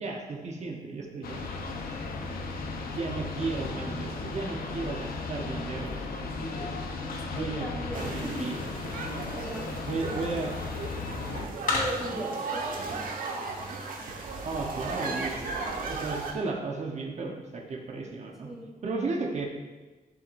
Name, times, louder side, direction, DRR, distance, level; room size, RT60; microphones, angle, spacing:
voice 1, 0.0-1.6 2.8-6.7 7.3-7.7 7.9-8.7 9.9-10.5 11.3-11.5 14.4-18.5 18.8-19.5, right 3 dB, 50° right, 0 dB, 1.1 m, -35 dB
sound 1, 1.2-11.5, left 3 dB, 85° left, 0.9 m, -36 dB
sound 2, 5.5-12.3, left 3 dB, 65° left, 2.8 m, -39 dB
voice 2, 7.0-8.6 9.3-9.7 10.1-10.2 11.7-13.3 18.4-18.7, right 1 dB, ahead, -2 dB, 1.2 m, -38 dB
sound 3, 7.9-16.3, right 3 dB, 70° right, 1.3 m, -36 dB
11.5 x 7.2 x 2.6 m, 1.2 s
wide cardioid pair, 155°, 15 cm